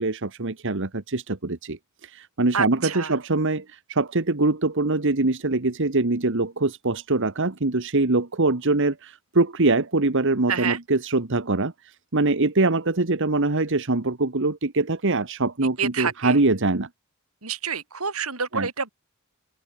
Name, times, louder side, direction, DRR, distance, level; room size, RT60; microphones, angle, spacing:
voice 1, 0.0-16.9 18.5-18.7, right 2 dB, 60° right, 1.5 m, -23 dB
voice 2, 2.5-3.1 10.5-10.8 15.8-16.4 17.4-18.9, right 6 dB, 85° right, 5.8 m, -28 dB
open air
head